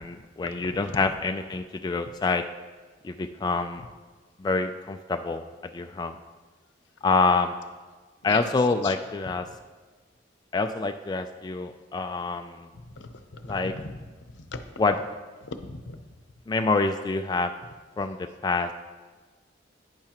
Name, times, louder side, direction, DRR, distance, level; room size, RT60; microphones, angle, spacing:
voice 1, 0.0-2.4 3.0-3.8 4.4-6.2 7.0-7.6 8.2-9.5 10.5-12.7 13.5-13.7 14.8-15.0 16.5-17.5 18.0-18.7, left 3 dB, 20° left, 6 dB, 0.3 m, -26 dB
voice 2, 0.6-0.9 8.3-8.5 8.8-8.9 13.0-14.0 14.3-14.6 15.4-16.0, left 3 dB, 80° left, 8 dB, 0.7 m, -39 dB
10.5 x 9.5 x 3.0 m, 1.3 s
head